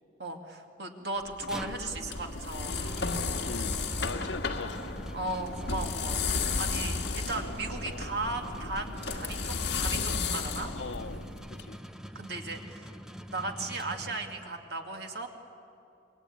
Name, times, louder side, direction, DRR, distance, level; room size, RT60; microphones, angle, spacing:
voice 1, 0.2-3.0 5.1-10.7 12.1-12.9 13.3-15.3, right 2 dB, 60° right, 3 dB, 2.5 m, -36 dB
sound 1, 1.2-14.6, equal, 5° right, 0.7 m, -45 dB
sound 2, 1.3-11.6, left 4 dB, 60° left, 1.9 m, -33 dB
voice 2, 3.4-5.0 10.6-11.2 11.5-11.8, left 3 dB, 80° left, 10 dB, 1.0 m, -41 dB
27.5 x 21.5 x 8.7 m, 2.8 s
head